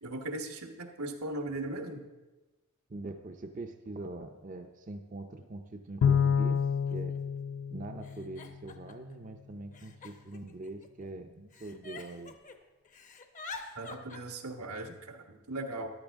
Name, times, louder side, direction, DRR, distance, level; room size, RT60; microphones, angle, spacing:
voice 1, 0.0-2.0 13.7-15.9, right 2 dB, 85° right, 4 dB, 1.4 m, -38 dB
voice 2, 2.9-6.6 6.9-7.2 7.7-12.3, right 2 dB, 35° right, 5 dB, 0.6 m, -43 dB
Giggle, 5.4-5.5 6.5-6.6 6.9-7.4 8.0-9.1 9.7-11.1 11.5-12.6 12.8-14.2, left 4 dB, 35° left, 0.8 m, -47 dB
Bowed string instrument, 6.0-8.6, left 7 dB, 70° left, 0.3 m, -28 dB
14.0 x 11.0 x 3.6 m, 1.1 s
head